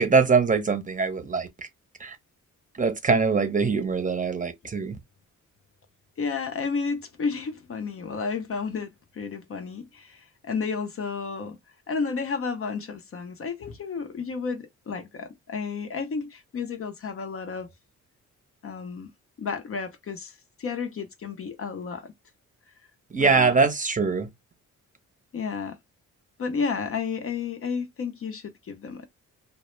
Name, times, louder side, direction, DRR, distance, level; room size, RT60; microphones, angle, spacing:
voice 1, 0.0-1.7 2.0-2.2 2.8-5.0 23.1-24.3, right 5 dB, 25° right, 0.7 m, -23 dB
voice 2, 6.2-11.6 11.9-17.7 18.6-19.1 19.4-22.1 23.2-23.6 25.3-25.8 26.4-29.1, left 5 dB, 45° left, 0.6 m, -32 dB
2.0 x 2.0 x 3.1 m
cardioid pair, 70°, 32 cm